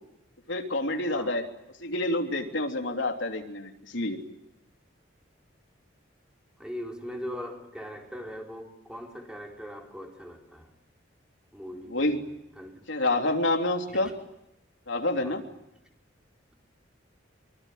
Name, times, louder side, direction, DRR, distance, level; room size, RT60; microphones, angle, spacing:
voice 1, 0.5-1.4 1.8-4.2 11.9-12.2 12.9-14.1 14.9-15.4, left 2 dB, 75° left, 3 dB, 3.2 m, -28 dB
voice 2, 6.6-10.7 11.5-12.2 12.6-12.9 13.9-14.0 15.2-15.4, equal, 5° right, 1 dB, 4.5 m, -40 dB
25.5 x 24.5 x 9.3 m, 0.86 s
head